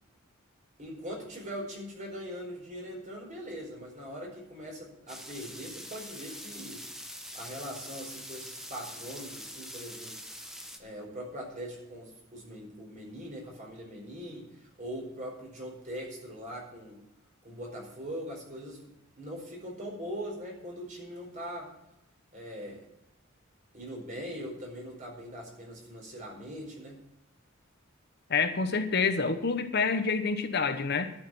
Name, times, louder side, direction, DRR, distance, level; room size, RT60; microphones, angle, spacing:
voice 1, 0.8-6.8 7.3-10.2 10.8-17.0 17.4-18.9 19.2-21.7 22.3-22.8 23.7-27.0, equal, 40° right, 0 dB, 4.7 m, -41 dB
sound 1, 5.1-10.8, equal, ahead, 1.2 m, -44 dB
voice 2, 28.3-31.1, left 5 dB, 55° left, 8 dB, 1.0 m, -27 dB
11.5 x 6.7 x 9.3 m, 0.84 s
head